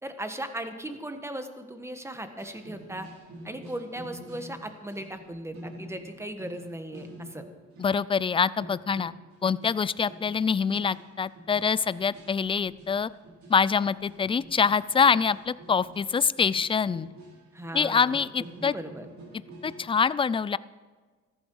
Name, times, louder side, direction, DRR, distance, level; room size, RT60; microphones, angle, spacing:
voice 1, 0.0-3.1 3.4-7.4 17.5-19.1, right 1 dB, 10° right, 7 dB, 1.4 m, -38 dB
sound 1, 2.4-8.0 8.3-8.4 8.6-19.8, right 1 dB, 65° right, 4.8 m, -47 dB
voice 2, 7.8-9.1 9.4-13.1 13.5-17.1 17.7-18.7 19.6-20.6, left 6 dB, 20° left, 19 dB, 0.3 m, -25 dB
14.0 x 12.0 x 4.7 m, 1.4 s
cardioid pair, 90°, 30 cm